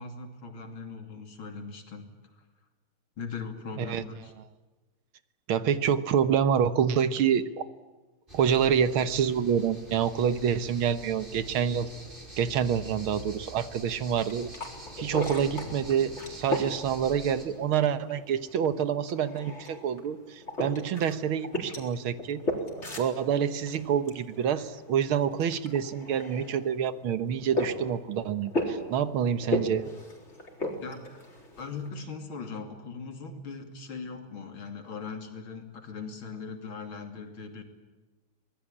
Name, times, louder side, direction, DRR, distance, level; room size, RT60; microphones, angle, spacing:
voice 1, 0.0-2.1 3.2-4.3 30.8-31.0 31.6-37.6, left 4 dB, 75° left, 6 dB, 3.5 m, -39 dB
voice 2, 5.5-7.7 8.3-11.9 12.4-14.5 15.0-22.4 23.0-29.9, right 8 dB, 85° right, 12 dB, 2.0 m, -27 dB
sound 1, 8.3-17.4, right 1 dB, 25° right, 5.5 m, -45 dB
sound 2, 14.1-31.9, left 1 dB, 30° left, 4.4 m, -37 dB
24.5 x 20.5 x 8.7 m, 1.2 s
omnidirectional pair, 2.2 m